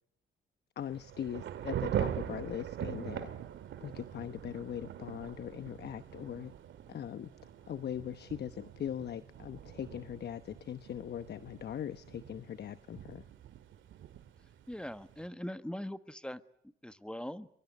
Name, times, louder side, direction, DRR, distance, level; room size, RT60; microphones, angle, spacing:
voice 1, 0.8-3.3 3.8-6.5 6.9-7.3 7.7-13.2, left 9 dB, 55° left, 12 dB, 1.0 m, -40 dB
Thunder / Rain, 0.8-15.3, right 10 dB, 75° right, 2.3 m, -42 dB
voice 2, 14.7-16.4 16.8-17.5, left 1 dB, 5° left, 11 dB, 1.4 m, -41 dB
23.5 x 23.0 x 9.6 m, 0.70 s
cardioid pair, 90°, 20 cm